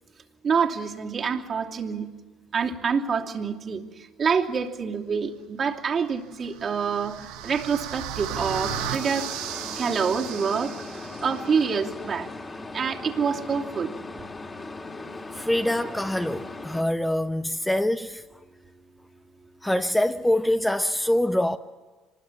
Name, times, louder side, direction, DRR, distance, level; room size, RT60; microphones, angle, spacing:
voice 1, 0.4-2.1 2.5-3.8 4.2-9.3 9.8-10.7 11.2-12.3 12.7-13.9, right 6 dB, 45° right, 2.8 m, -26 dB
sound 1, 6.3-11.4, right 9 dB, 75° right, 1.2 m, -35 dB
sound 2, 8.3-16.8, left 2 dB, 25° left, 2.7 m, -38 dB
voice 2, 15.3-18.2 19.6-21.6, left 1 dB, 10° left, 1.1 m, -24 dB
26.0 x 20.5 x 7.5 m
hypercardioid pair, 65°, 0 cm